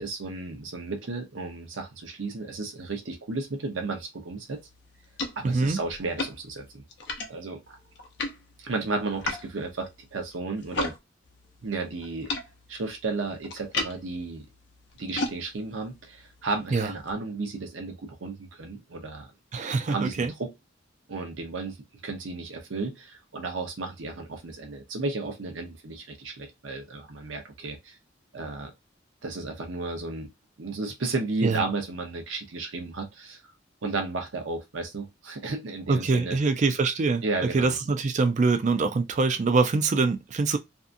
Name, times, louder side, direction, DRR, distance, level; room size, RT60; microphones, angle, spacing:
voice 1, 0.0-4.6 5.4-6.8 7.3-7.8 8.6-10.9 11.6-12.3 12.7-14.5 15.0-19.3 19.9-20.5 21.1-21.8 22.0-28.0 28.3-28.7 29.2-30.3 30.6-33.4 33.8-36.4 37.2-37.8, right 3 dB, 90° right, 0.8 m, -33 dB
sound 1, 4.5-11.0 11.2-17.1, left 2 dB, 65° left, 0.6 m, -37 dB
voice 2, 5.4-5.8 16.7-16.9 19.5-20.3 31.4-31.6 35.9-37.2 37.5-40.6, right 4 dB, 40° right, 0.4 m, -24 dB
2.7 x 2.3 x 2.5 m
head